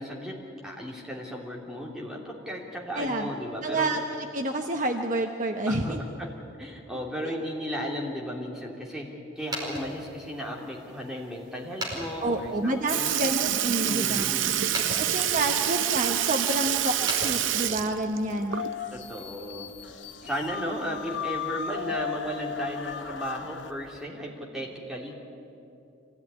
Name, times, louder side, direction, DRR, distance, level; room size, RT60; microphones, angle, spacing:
voice 1, 0.0-3.9 5.7-6.3 6.6-13.2 13.8-14.6 18.9-19.7 20.2-25.1, equal, 5° right, -3 dB, 3.0 m, -35 dB
voice 2, 2.9-3.3 3.6-4.0 4.3-6.0 7.2-7.3 12.2-14.2 15.0-18.6, right 2 dB, 40° right, 3 dB, 1.1 m, -28 dB
sound 1, 9.3-18.1, equal, 20° right, 4.9 m, -41 dB
Sink (filling or washing) / Liquid, 12.4-12.5 12.9-19.0 19.3-19.4 21.0-21.1 22.0-22.1 22.9-23.1 23.9-24.0, right 11 dB, 70° right, 0.6 m, -27 dB
sound 2, 18.5-23.7, left 8 dB, 65° left, 0.9 m, -36 dB
25.0 x 17.0 x 9.8 m, 2.7 s
head